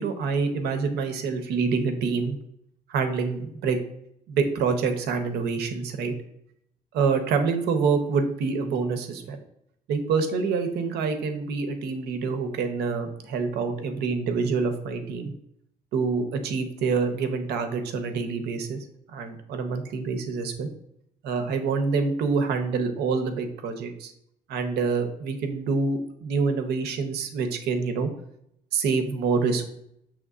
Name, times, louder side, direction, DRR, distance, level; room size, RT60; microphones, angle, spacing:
voice 1, 0.0-2.4 2.9-3.8 4.3-6.1 6.9-9.4 9.9-15.3 15.9-18.8 19.1-20.7 21.2-24.1 24.5-28.1 28.7-29.6, right 5 dB, 75° right, 7 dB, 0.7 m, -26 dB
6.4 x 3.2 x 2.4 m, 0.76 s
cardioid pair, 110°, 17 cm